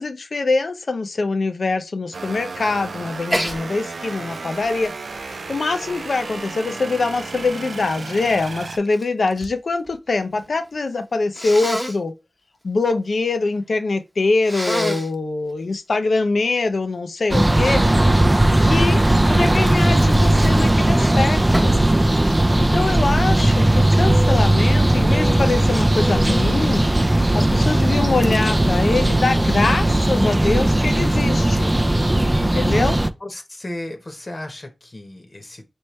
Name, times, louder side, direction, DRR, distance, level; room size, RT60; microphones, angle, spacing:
voice 1, 0.0-4.9 5.2-12.1 12.6-17.8 18.6-21.8 22.6-26.9 27.1-31.7 32.4-33.0, left 3 dB, 70° left, 0.6 m, -23 dB
sound 1, 2.1-8.8, right 4 dB, 80° right, 0.5 m, -33 dB
Sneeze, 3.3-3.6 4.1-6.4 7.1-9.6 9.9-10.5 11.3-12.0 14.4-15.2 18.7-21.0 21.5-21.9, equal, ahead, 0.9 m, -29 dB
sound 2, 17.3-33.1, right 1 dB, 20° right, 0.4 m, -17 dB
voice 2, 33.2-35.7, left 1 dB, 40° left, 1.1 m, -34 dB
4.4 x 3.1 x 3.1 m
wide cardioid pair, 55°, 0 cm